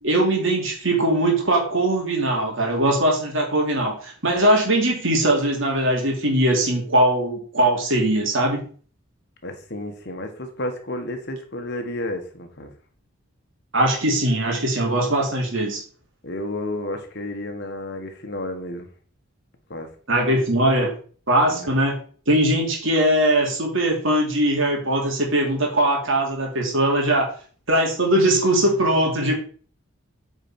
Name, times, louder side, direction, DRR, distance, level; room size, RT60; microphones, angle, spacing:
voice 1, 0.0-8.6 13.7-15.8 20.1-20.9 21.3-22.0 22.3-27.3 27.7-29.3, right 1 dB, 65° right, 0 dB, 2.8 m, -20 dB
voice 2, 9.4-12.7 16.2-18.9 19.7-19.9 21.5-21.7, left 1 dB, 50° left, 5 dB, 1.5 m, -31 dB
8.9 x 5.0 x 4.5 m, 0.43 s
head